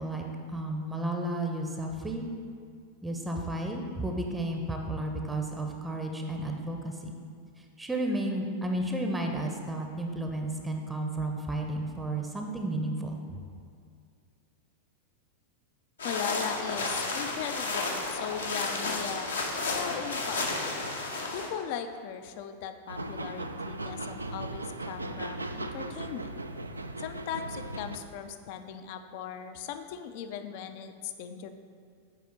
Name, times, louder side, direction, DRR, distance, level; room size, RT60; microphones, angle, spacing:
voice 1, 0.0-2.3 3.0-7.1 7.8-13.2, right 1 dB, 10° right, 2 dB, 0.7 m, -32 dB
sound 1, 16.0-21.5, left 3 dB, 70° left, 0.9 m, -32 dB
voice 2, 16.0-19.3 19.7-20.8 21.3-26.4 27.0-31.5, left 8 dB, 50° left, 8 dB, 0.5 m, -38 dB
sound 2, 22.9-28.0, right 2 dB, 80° right, 0.3 m, -37 dB
7.8 x 4.9 x 4.5 m, 2.2 s
figure-of-eight pair, 90°, 0 cm